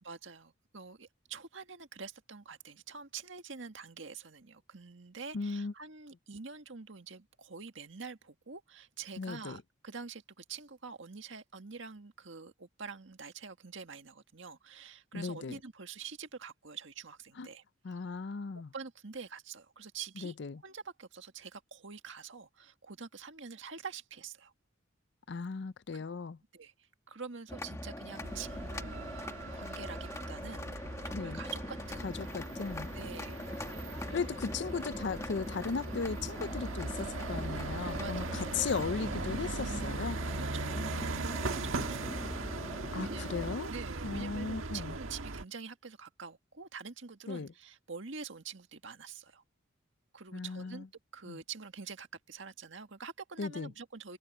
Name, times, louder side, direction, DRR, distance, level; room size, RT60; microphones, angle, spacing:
voice 1, 0.0-17.6 18.7-20.3 20.6-24.5 25.9-26.0 26.5-26.7 27.1-29.2 29.5-30.7 31.0-32.1 32.9-33.4 34.1-34.4 38.0-38.5 40.3-42.2 43.0-43.4 43.7-49.4 50.1-50.9 51.1-54.2, right 5 dB, 65° right, 1.8 m, -46 dB
voice 2, 5.3-5.7 9.2-9.6 15.1-15.6 17.4-17.5 17.8-18.7 20.2-20.6 25.3-26.4 31.1-31.4 32.0-32.9 33.9-40.2 42.9-43.7 44.0-44.9 47.3-47.5 50.3-50.9 51.3-51.4 53.4-53.7, left 4 dB, 60° left, 0.5 m, -37 dB
sound 1, 27.5-43.6, left 1 dB, 15° left, 1.3 m, -42 dB
sound 2, 28.2-45.4, right 3 dB, 85° right, 1.5 m, -39 dB
open air
head